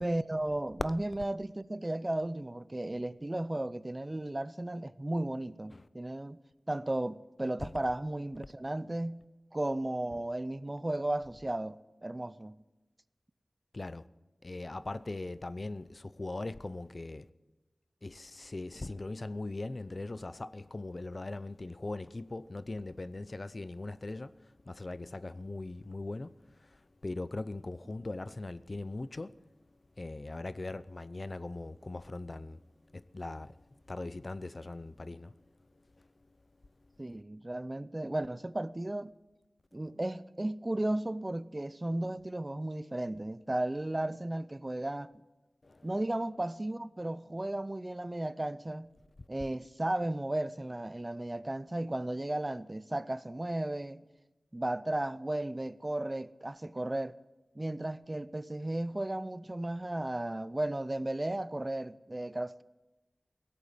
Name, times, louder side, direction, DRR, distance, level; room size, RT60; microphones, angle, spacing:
voice 1, 0.0-6.4 6.7-9.2 9.5-12.6 37.0-39.1 39.7-45.1 45.8-48.9 49.3-54.0 54.5-57.2 57.6-62.6, right 1 dB, 25° right, 0.5 m, -34 dB
voice 2, 13.7-14.1 14.4-17.3 18.0-29.4 30.0-35.3 35.8-36.1 45.6-46.0, left 2 dB, 50° left, 0.5 m, -40 dB
17.5 x 8.1 x 8.8 m
wide cardioid pair, 55°, 0 cm